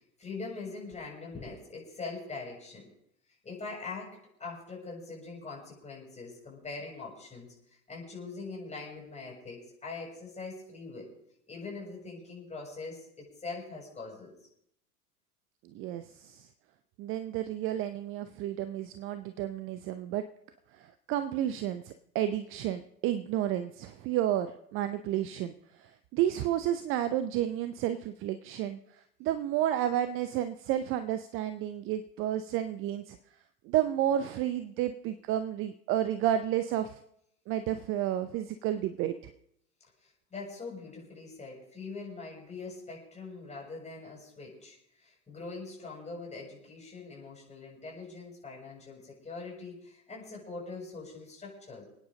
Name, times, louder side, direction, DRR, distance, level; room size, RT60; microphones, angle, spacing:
voice 1, 0.2-2.9 3.4-7.5 7.9-11.1 11.5-14.4 40.0-51.8, left 3 dB, 15° left, -3 dB, 7.2 m, -43 dB
voice 2, 15.7-16.5 17.0-20.2 20.7-33.2 33.6-37.0 37.5-39.3, right 11 dB, 30° right, 11 dB, 0.7 m, -31 dB
27.5 x 9.6 x 3.9 m, 0.75 s
figure-of-eight pair, 85°, 46 cm